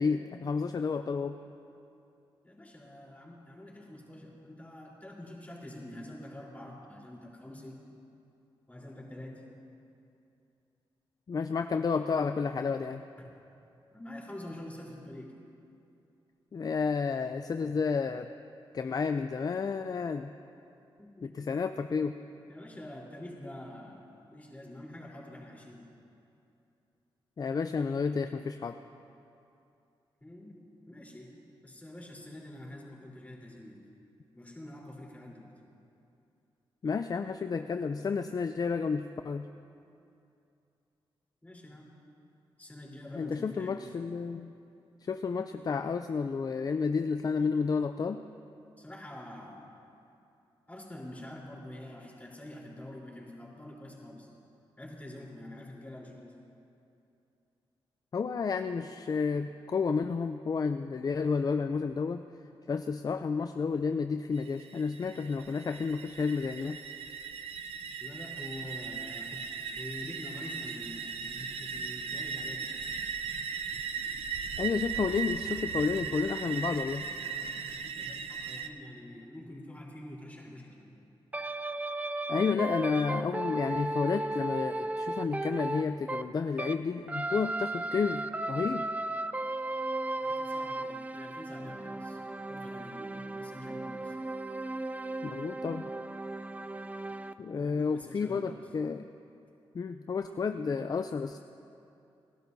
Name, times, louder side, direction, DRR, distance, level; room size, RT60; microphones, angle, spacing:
voice 1, 0.0-1.4 11.3-13.0 16.5-18.3 18.7-20.3 21.2-22.2 27.4-28.8 36.8-39.5 43.2-44.5 45.0-48.2 58.1-62.3 62.7-66.8 74.6-77.0 82.3-88.9 95.2-95.9 97.4-99.1 99.7-101.4, left 5 dB, 40° left, 8 dB, 0.4 m, -31 dB
voice 2, 2.4-7.8 8.7-9.4 13.9-15.3 21.0-21.3 22.5-25.9 30.2-30.6 30.9-31.3 31.6-33.8 34.3-35.5 41.4-41.9 42.6-43.9 48.8-49.7 50.7-54.3 54.8-56.2 68.0-72.7 77.2-81.1 90.2-92.2 92.5-94.1 97.5-98.7, left 1 dB, 15° left, -4 dB, 3.8 m, -46 dB
sound 1, 64.4-78.7, right 6 dB, 90° right, 0.6 m, -38 dB
sound 2, 81.3-86.8 87.1-97.3, right 2 dB, 15° right, 0.4 m, -35 dB
30.0 x 12.0 x 2.7 m, 2.7 s
cardioid pair, 80°, 10 cm